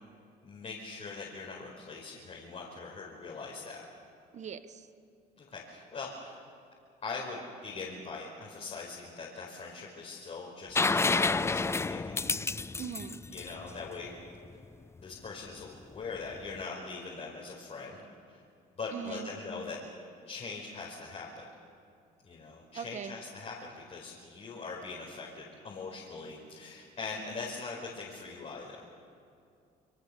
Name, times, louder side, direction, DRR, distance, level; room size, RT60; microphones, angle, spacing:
voice 1, 0.4-3.8 5.4-6.4 7.0-12.2 13.3-14.1 15.0-18.0 18.3-18.4 18.7-19.8 20.3-21.4 22.2-28.8, left 4 dB, 40° left, -3 dB, 4.9 m, -42 dB
voice 2, 4.3-4.9 12.8-13.2 18.9-19.3 22.7-23.2, right 7 dB, 45° right, 11 dB, 1.5 m, -40 dB
sound 1, 10.8-14.5 16.3-16.4, left 3 dB, 15° left, 0.5 m, -29 dB
27.0 x 23.5 x 7.0 m, 2.5 s
cardioid pair, 110°, 17 cm